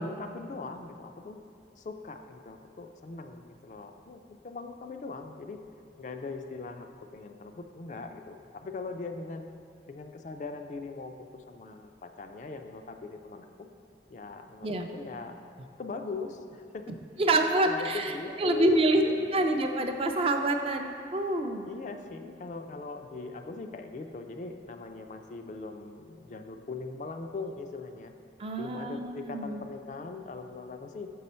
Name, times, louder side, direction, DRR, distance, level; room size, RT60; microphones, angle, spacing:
voice 1, 0.0-1.4 1.8-5.6 6.0-9.5 9.9-13.7 14.1-15.4 15.8-16.9 17.6-19.5 21.6-28.1 28.6-31.1, left 4 dB, 45° left, 6 dB, 0.3 m, -40 dB
voice 2, 17.2-18.1 18.4-19.0 19.3-21.7 28.4-29.6, right 2 dB, 30° right, 5 dB, 0.4 m, -27 dB
6.6 x 5.5 x 4.2 m, 2.4 s
head